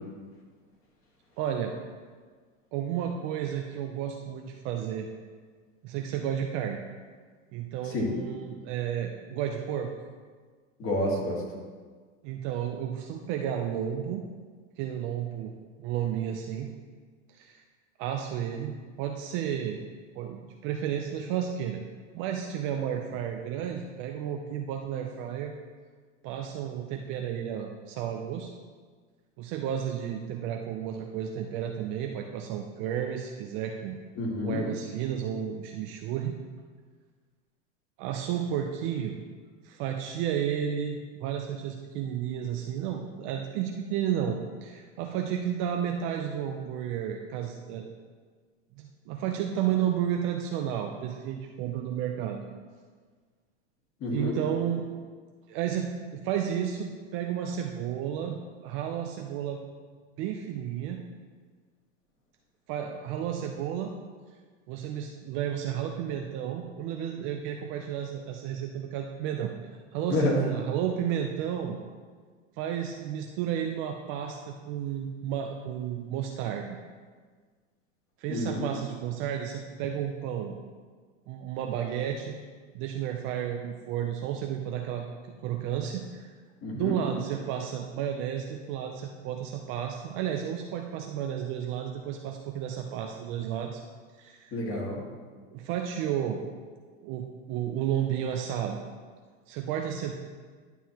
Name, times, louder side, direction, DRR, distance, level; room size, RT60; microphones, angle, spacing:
voice 1, 1.4-1.7 2.7-5.1 5.8-6.8 7.5-9.9 12.2-14.2 14.8-15.5 15.8-16.7 17.3-17.6 18.0-19.8 20.2-21.8 22.1-25.5 26.2-28.5 29.4-34.0 34.4-36.4 38.0-39.2 39.6-47.9 48.7-52.4 54.1-54.9 55.5-59.6 60.2-61.0 62.7-63.9 64.7-69.5 69.9-71.8 72.6-76.8 78.2-80.6 81.3-82.4 82.7-85.0 85.4-86.3 86.7-93.8 94.2-94.5 95.5-96.4 97.0-98.8 99.5-100.1, right 9 dB, 35° right, 3 dB, 0.4 m, -32 dB
voice 2, 10.8-11.4 34.2-34.7 54.0-54.4 70.1-70.4 78.3-78.7 86.6-86.9 94.5-95.0, left 1 dB, 35° left, -1 dB, 1.9 m, -29 dB
11.0 x 5.5 x 2.9 m, 1.5 s
supercardioid pair, 130°, 39 cm